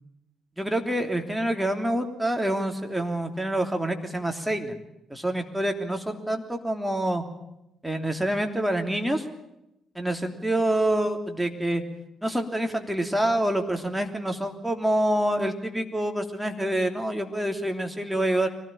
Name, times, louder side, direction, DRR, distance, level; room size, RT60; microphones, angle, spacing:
voice 1, 0.6-4.8 5.1-7.2 7.8-9.2 9.9-11.8 12.2-18.5, right 1 dB, 5° right, 5 dB, 3.1 m, -26 dB
24.0 x 18.0 x 9.0 m, 0.88 s
figure-of-eight pair, 40°, 0 cm